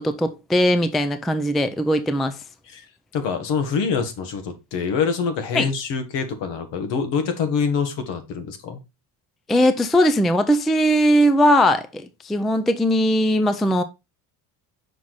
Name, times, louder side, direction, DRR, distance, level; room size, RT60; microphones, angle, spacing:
voice 1, 0.0-2.4 5.5-5.7 9.5-13.8, equal, ahead, 0.3 m, -19 dB
voice 2, 3.1-8.8, left 6 dB, 75° left, 1.7 m, -25 dB
6.0 x 4.7 x 4.0 m
cardioid pair, 130°, 45 cm